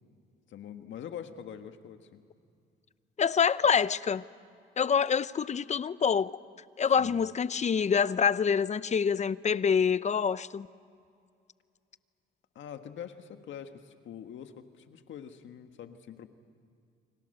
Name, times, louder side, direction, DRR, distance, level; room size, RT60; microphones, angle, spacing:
voice 1, 0.5-2.2 7.0-7.2 12.5-16.3, left 8 dB, 70° left, 7 dB, 1.6 m, -44 dB
voice 2, 3.2-4.2 4.8-6.4 6.8-10.7, left 6 dB, 35° left, 17 dB, 0.7 m, -26 dB
29.5 x 25.0 x 6.7 m, 2.4 s
cardioid pair, 90°, 20 cm